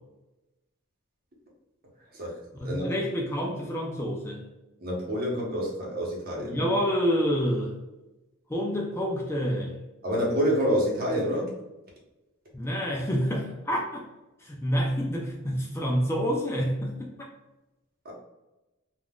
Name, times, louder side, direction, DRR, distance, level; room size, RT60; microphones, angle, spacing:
voice 1, 2.6-4.4 6.4-7.7 8.5-9.8 12.5-14.1 14.4-17.1, equal, 10° left, -1 dB, 0.3 m, -28 dB
voice 2, 4.8-6.7 10.0-11.5 18.0-18.1, equal, 45° right, -3 dB, 0.9 m, -27 dB
3.4 x 2.4 x 2.3 m, 1.0 s
head